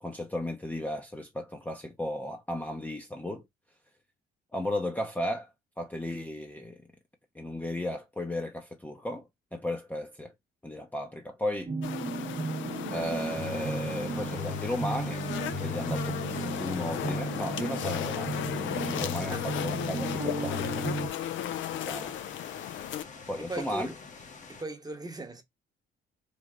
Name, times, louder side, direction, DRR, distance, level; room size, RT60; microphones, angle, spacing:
voice 1, 0.0-3.4 4.5-5.5 5.8-6.8 7.3-10.3 10.6-11.7 12.9-15.3 15.6-20.9 21.7-22.2 23.3-23.9, left 1 dB, 10° left, 0.6 m, -35 dB
sound 1, 11.7-21.1, right 2 dB, 45° right, 0.9 m, -34 dB
sound 2, 11.8-23.0, left 11 dB, 75° left, 0.4 m, -36 dB
sound 3, 13.1-24.6, left 5 dB, 40° left, 0.9 m, -48 dB
voice 2, 23.4-23.9 24.5-25.4, right 2 dB, 20° right, 0.9 m, -38 dB
3.3 x 2.0 x 3.6 m
cardioid pair, 90°, 20 cm